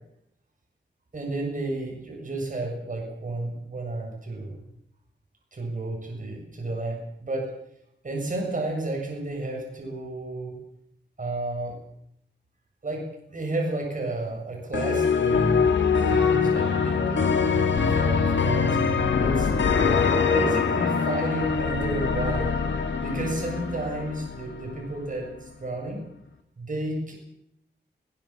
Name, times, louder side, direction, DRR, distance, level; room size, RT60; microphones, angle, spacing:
voice 1, 1.1-4.6 5.5-7.5 8.0-10.6 11.2-11.7 12.8-15.7 16.0-19.8 20.2-22.5 23.0-26.0 26.6-27.1, right 2 dB, 45° right, 0 dB, 7.4 m, -32 dB
sound 1, 14.7-24.8, left 5 dB, 90° left, 2.4 m, -23 dB
22.0 x 19.5 x 7.5 m, 0.74 s
wide cardioid pair, 120°, 19 cm